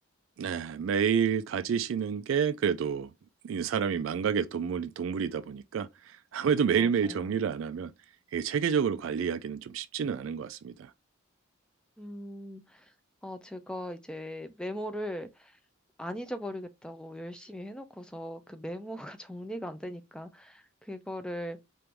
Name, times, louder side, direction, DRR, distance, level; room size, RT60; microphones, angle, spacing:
voice 1, 0.4-3.1 3.4-7.9 8.3-10.9, right 7 dB, 65° right, 0.3 m, -29 dB
voice 2, 6.8-7.4 12.0-12.9 13.2-15.6 16.0-21.6, equal, 5° left, 0.4 m, -39 dB
4.5 x 2.6 x 3.3 m
head